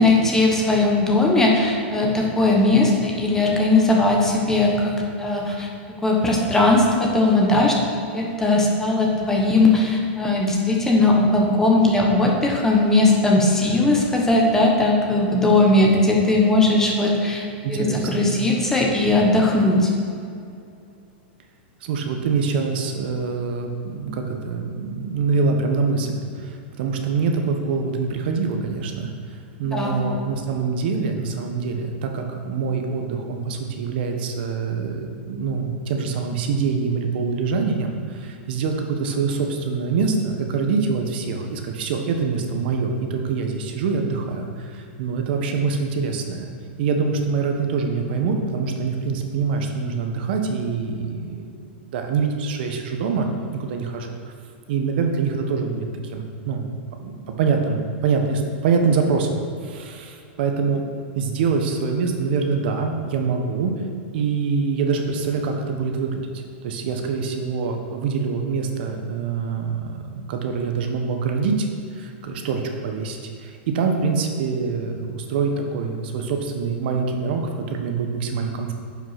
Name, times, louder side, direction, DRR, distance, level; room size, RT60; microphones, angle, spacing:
voice 1, 0.0-5.7 6.0-19.9 29.7-30.0, left 2 dB, 10° left, -1 dB, 1.2 m, -19 dB
voice 2, 17.6-18.4 21.8-29.1 29.6-46.5 46.8-51.4 51.9-53.3 53.6-54.3 54.7-56.7 57.0-60.8 61.1-63.7 64.1-66.2 66.6-71.7 71.9-78.7, right 5 dB, 60° right, 4 dB, 1.1 m, -25 dB
9.4 x 5.9 x 5.9 m, 2.5 s
supercardioid pair, 155°, 6 cm